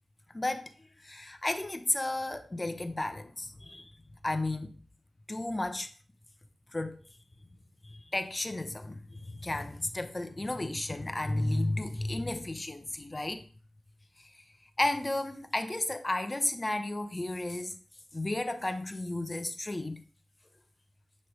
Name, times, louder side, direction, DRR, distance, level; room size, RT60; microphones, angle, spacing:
voice 1, 0.3-0.7 1.0-3.9 4.2-4.7 5.3-5.9 6.7-7.0 7.8-13.4 14.2-14.4 14.8-17.8 18.1-20.0, left 2 dB, 30° left, 0.7 m, -33 dB
9.4 x 3.3 x 3.1 m
cardioid pair, 45°, 0 cm